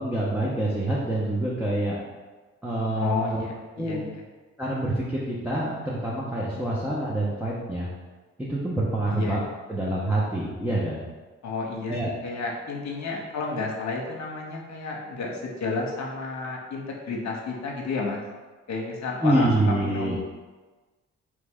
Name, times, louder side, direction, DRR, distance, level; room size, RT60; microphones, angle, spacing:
voice 1, 0.0-2.0 2.6-3.4 3.8-4.0 4.6-7.9 8.4-9.4 9.7-11.0 11.9-12.1 19.2-20.2, right 1 dB, 5° right, -7 dB, 1.0 m, -26 dB
voice 2, 3.0-4.2 9.1-9.4 11.4-18.2 18.7-20.2, left 3 dB, 65° left, 0 dB, 0.9 m, -31 dB
3.9 x 3.3 x 3.6 m, 1.3 s
supercardioid pair, 45°, 31 cm